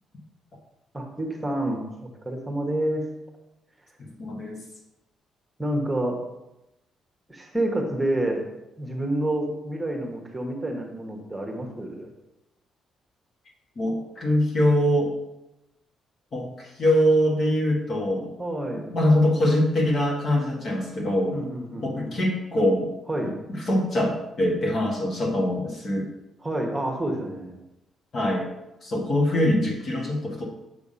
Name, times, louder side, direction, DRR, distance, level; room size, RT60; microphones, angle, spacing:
voice 1, 0.9-3.0 5.6-6.2 7.3-8.4 8.8-12.1 18.4-18.9 21.3-22.1 23.1-23.3 26.4-27.5, right 1 dB, 10° right, 0 dB, 1.3 m, -28 dB
voice 2, 4.0-4.6 13.8-15.1 16.3-18.3 18.9-21.4 21.8-22.9 23.2-26.1 28.1-28.5 28.8-30.4, left 1 dB, 45° left, -1 dB, 1.7 m, -23 dB
7.1 x 3.5 x 5.6 m, 0.93 s
cardioid pair, 90°, 0 cm